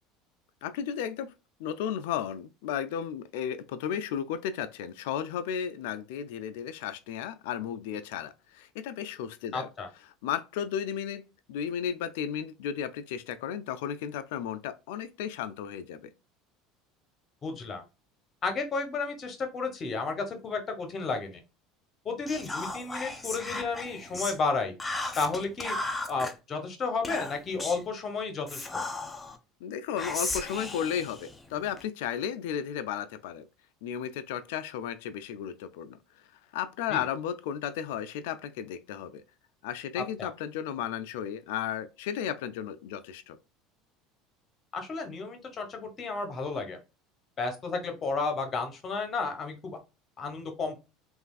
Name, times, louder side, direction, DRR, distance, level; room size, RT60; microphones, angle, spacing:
voice 1, 0.6-1.3 1.6-9.7 10.2-11.2 11.5-16.1 29.6-33.5 33.8-36.0 36.5-39.2 39.6-43.4, left 9 dB, 75° left, 0.3 m, -34 dB
voice 2, 9.5-9.9 17.4-17.8 18.4-21.4 22.0-24.8 25.2-28.9 36.9-37.0 40.0-40.3 44.7-46.8 47.4-49.8 50.2-50.8, left 4 dB, 40° left, 0.9 m, -32 dB
Whispering, 22.3-24.4 24.8-26.3 27.0-27.9 28.5-29.4 30.0-31.8, left 2 dB, 15° left, 0.5 m, -36 dB
3.2 x 2.4 x 2.3 m
hypercardioid pair, 85°, 0 cm